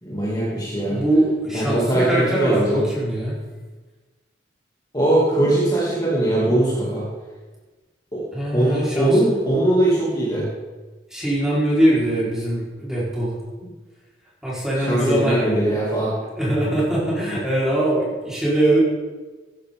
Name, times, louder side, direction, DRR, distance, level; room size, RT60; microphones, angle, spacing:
voice 1, 0.0-1.0 1.5-2.9 4.9-7.1 8.1-8.2 8.5-10.5 14.9-16.1, right 1 dB, 20° left, -7 dB, 2.7 m, -20 dB
voice 2, 0.8-3.4 8.3-9.2 11.1-13.3 14.4-15.8 16.3-18.8, right 1 dB, 5° right, -7 dB, 4.5 m, -22 dB
16.5 x 10.0 x 3.9 m, 1.3 s
head